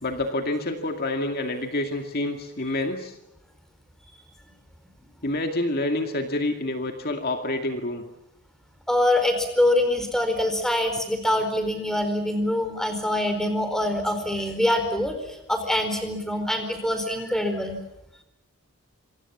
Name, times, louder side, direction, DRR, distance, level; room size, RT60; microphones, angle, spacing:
voice 1, 0.0-3.2 5.2-8.0, left 2 dB, 45° left, 5 dB, 2.2 m, -28 dB
voice 2, 8.9-17.8, left 1 dB, ahead, 7 dB, 4.5 m, -24 dB
27.0 x 26.0 x 7.3 m, 0.86 s
head